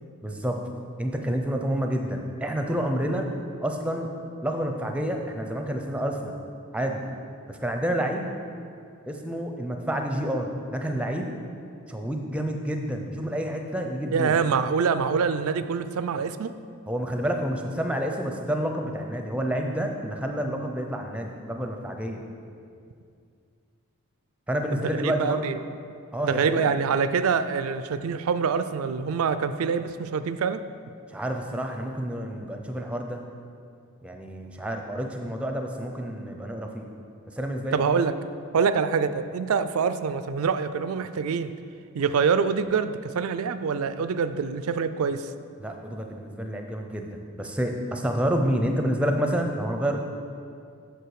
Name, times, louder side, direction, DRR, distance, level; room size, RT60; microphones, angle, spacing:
voice 1, 0.2-0.6 1.0-3.2 3.6-4.1 4.4-6.4 6.7-7.0 7.5-8.3 9.1-11.3 11.9-14.4 16.9-22.2 24.5-25.6 26.1-26.7 31.1-33.2 34.0-36.9 37.3-37.8 45.6-50.0, equal, 5° right, 3 dB, 0.5 m, -29 dB
voice 2, 14.1-16.5 24.7-25.6 26.2-30.6 37.7-38.1 38.5-41.5 41.9-45.3, right 6 dB, 75° right, 12 dB, 0.4 m, -25 dB
8.1 x 6.4 x 4.8 m, 2.3 s
head